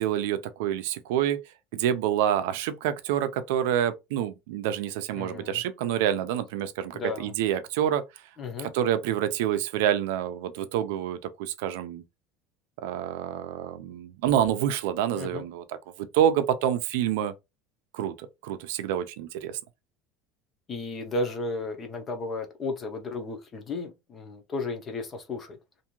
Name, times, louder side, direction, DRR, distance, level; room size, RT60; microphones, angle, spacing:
voice 1, 0.0-1.4 1.7-8.0 8.6-12.0 12.8-15.6 16.0-17.3 17.9-18.1 18.4-19.6, right 10 dB, 75° right, 0.4 m, -27 dB
voice 2, 5.1-5.6 6.9-7.3 8.4-8.7 15.1-15.4 20.7-25.6, left 2 dB, 20° left, 0.6 m, -34 dB
2.6 x 2.4 x 2.9 m
cardioid pair, 180°, 0 cm